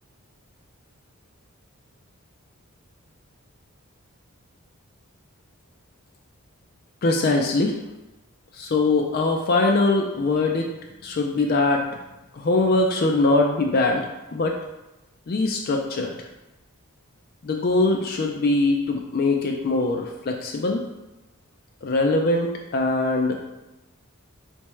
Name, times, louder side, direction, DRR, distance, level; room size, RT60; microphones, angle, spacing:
voice 1, 7.0-7.8 8.5-10.7 11.0-11.9 12.3-14.1 14.3-14.6 15.3-16.1 17.4-20.8 21.8-23.5, left 2 dB, 45° left, 2 dB, 0.4 m, -22 dB
4.0 x 3.4 x 3.1 m, 0.98 s
head